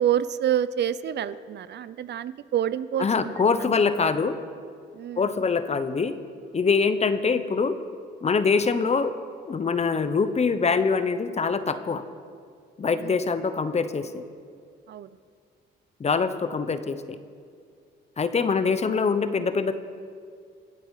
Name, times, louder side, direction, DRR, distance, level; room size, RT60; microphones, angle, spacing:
voice 1, 0.0-3.3 4.9-5.3 13.0-13.2 14.9-15.1, right 10 dB, 60° right, 15 dB, 0.5 m, -27 dB
voice 2, 3.0-4.4 5.2-6.1 6.5-7.7 8.2-9.1 9.5-12.0 12.8-14.2 16.0-17.2 18.2-19.8, left 5 dB, 35° left, 11 dB, 0.9 m, -24 dB
24.5 x 8.8 x 4.9 m, 2.2 s
cardioid pair, 90°, 20 cm